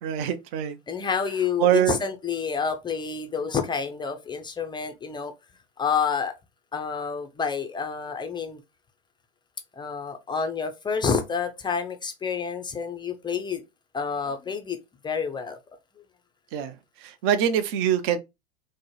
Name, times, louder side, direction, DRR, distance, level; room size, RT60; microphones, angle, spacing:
voice 1, 0.0-0.8 1.6-2.0 16.5-16.8 17.0-18.2, right 10 dB, 45° right, 0.6 m, -24 dB
voice 2, 0.9-5.3 5.8-6.4 6.7-8.6 9.7-13.6 13.9-14.8 15.0-15.6, left 6 dB, 15° left, 0.4 m, -28 dB
4.2 x 2.0 x 3.0 m
hypercardioid pair, 100°, 34 cm